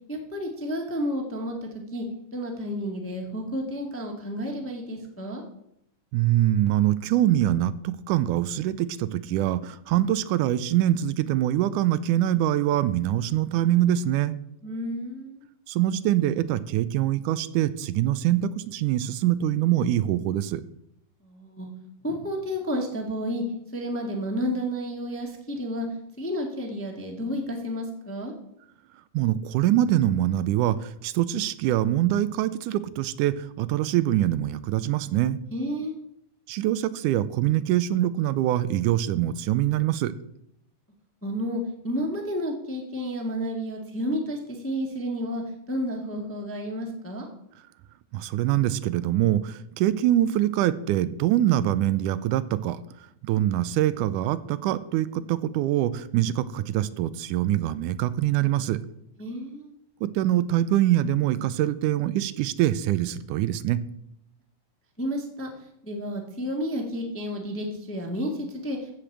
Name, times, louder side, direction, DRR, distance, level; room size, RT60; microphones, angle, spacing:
voice 1, 0.1-2.1 2.3-5.4 14.6-15.4 21.2-21.7 22.0-23.4 23.7-25.9 26.2-28.3 35.5-35.9 41.2-47.3 59.2-59.7 65.0-68.9, equal, 10° left, 1 dB, 0.8 m, -31 dB
voice 2, 6.1-14.3 15.7-20.6 29.1-35.4 36.5-40.1 48.1-52.8 53.2-58.8 60.0-63.8, right 13 dB, 85° right, 15 dB, 2.1 m, -24 dB
15.0 x 5.1 x 7.3 m, 0.77 s
omnidirectional pair, 3.6 m